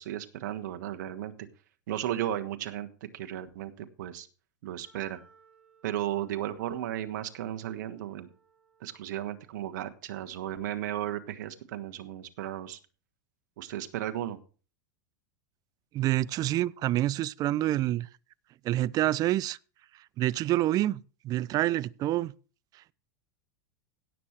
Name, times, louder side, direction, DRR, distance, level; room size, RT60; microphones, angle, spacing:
voice 1, 0.0-1.5 1.9-4.3 4.6-5.2 5.8-8.3 8.8-12.8 13.6-14.4, right 12 dB, 70° right, 1.3 m, -35 dB
Wind instrument woodwind instrument, 4.8-9.9, right 5 dB, 10° right, 2.6 m, -64 dB
voice 2, 15.9-18.1 18.6-19.6 20.2-22.3, right 14 dB, 40° right, 0.4 m, -27 dB
17.0 x 7.3 x 3.1 m
hypercardioid pair, 110°, 10 cm